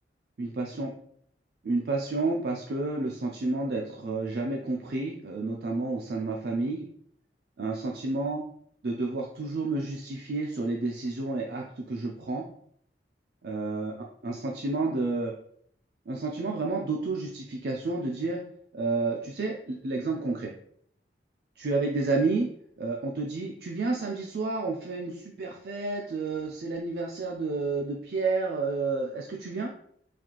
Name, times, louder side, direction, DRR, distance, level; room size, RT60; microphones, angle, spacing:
voice 1, 0.4-0.9 1.6-6.8 7.6-8.4 8.8-12.5 13.4-13.9 14.2-15.3 16.1-18.4 18.7-20.5 21.6-22.5 22.8-29.7, right 3 dB, 60° right, 0 dB, 0.4 m, -30 dB
4.0 x 2.5 x 3.0 m, 0.65 s
head